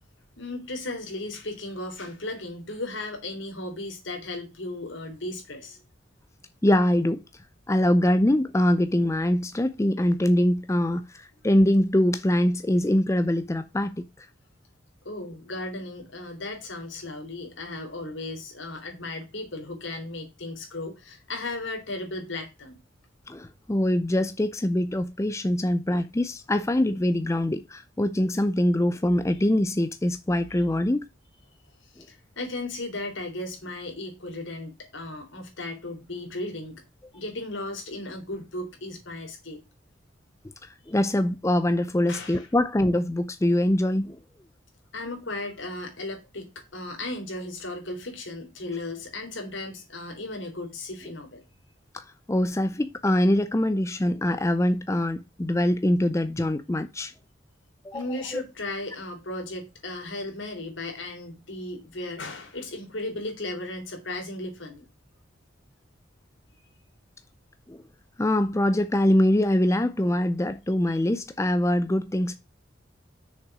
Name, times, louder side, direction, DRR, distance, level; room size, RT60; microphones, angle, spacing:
voice 1, 0.4-5.8 15.0-22.8 31.8-36.7 37.1-39.6 40.9-41.0 42.1-42.4 44.9-51.4 57.9-64.9 70.9-71.0, left 2 dB, 75° left, 3.4 m, -36 dB
voice 2, 6.6-7.2 7.7-14.3 23.3-31.0 32.0-32.1 40.9-44.2 51.9-57.1 57.8-58.0 67.7-67.8 68.2-72.3, left 1 dB, 15° left, 0.5 m, -23 dB
6.6 x 5.8 x 6.0 m
head